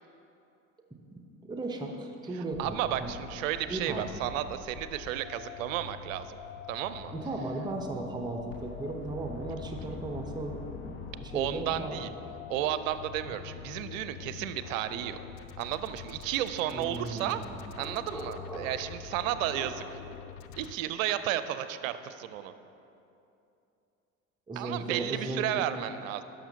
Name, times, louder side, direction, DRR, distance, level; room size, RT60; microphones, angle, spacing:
voice 1, 1.5-3.2 3.7-4.0 7.1-10.9 11.2-12.1 13.2-13.3 16.7-17.6 24.5-25.4, right 2 dB, 10° right, 2 dB, 0.7 m, -36 dB
sound 1, 2.5-20.7, left 9 dB, 55° left, 0.5 m, -46 dB
voice 2, 2.6-6.4 6.7-7.1 11.3-12.1 12.5-15.2 15.6-17.4 17.8-20.0 20.6-22.5 24.6-26.2, right 12 dB, 70° right, 12 dB, 0.5 m, -33 dB
sound 2, 8.5-12.5, left 4 dB, 25° left, 0.8 m, -46 dB
sound 3, 17.7-19.0 19.5-19.8, right 1 dB, 5° left, 1.2 m, -42 dB
11.5 x 6.3 x 2.8 m, 2.8 s
hypercardioid pair, 65°, 41 cm